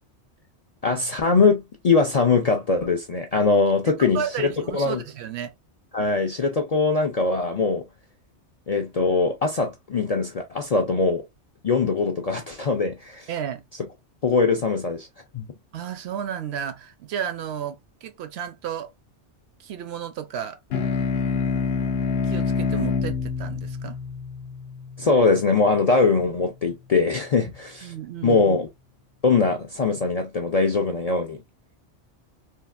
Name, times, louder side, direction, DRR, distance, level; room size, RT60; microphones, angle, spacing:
voice 1, 0.8-4.2 4.7-5.0 5.9-7.8 8.7-11.2 11.6-13.3 14.2-15.1 15.3-15.5 25.0-27.9 28.2-28.7 29.2-31.4, left 4 dB, 50° left, 0.4 m, -22 dB
voice 2, 4.0-5.5 13.3-13.6 15.7-18.9 19.6-20.6 22.3-24.0 27.4-27.5 27.8-28.4, right 9 dB, 70° right, 0.8 m, -32 dB
sound 1, 20.7-25.6, left 5 dB, 65° left, 0.8 m, -27 dB
3.4 x 2.4 x 2.4 m
omnidirectional pair, 1.2 m